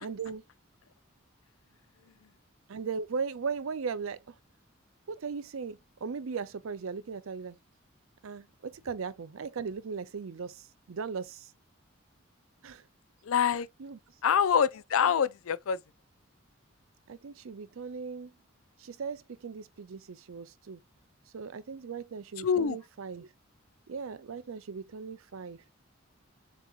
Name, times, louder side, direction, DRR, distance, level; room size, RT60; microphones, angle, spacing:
voice 1, 0.0-0.4 2.7-4.3 5.1-7.6 8.2-11.5 12.6-12.8 13.8-14.0 17.1-18.3 18.8-20.8 21.3-23.3 23.9-25.6, right 5 dB, 80° right, 0.5 m, -38 dB
voice 2, 13.3-13.7 14.2-15.8 22.4-22.8, left 7 dB, 90° left, 0.4 m, -25 dB
7.3 x 2.9 x 2.4 m
head